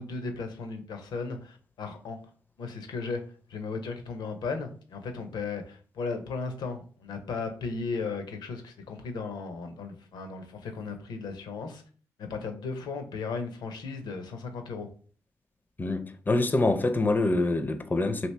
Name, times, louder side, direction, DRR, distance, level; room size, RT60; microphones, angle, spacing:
voice 1, 0.0-2.2 2.6-3.2 3.5-11.8 12.2-14.9, left 4 dB, 75° left, 0.6 m, -36 dB
voice 2, 15.8-18.3, left 2 dB, 25° left, 0.5 m, -25 dB
2.8 x 2.6 x 3.2 m
supercardioid pair, 45°, 7 cm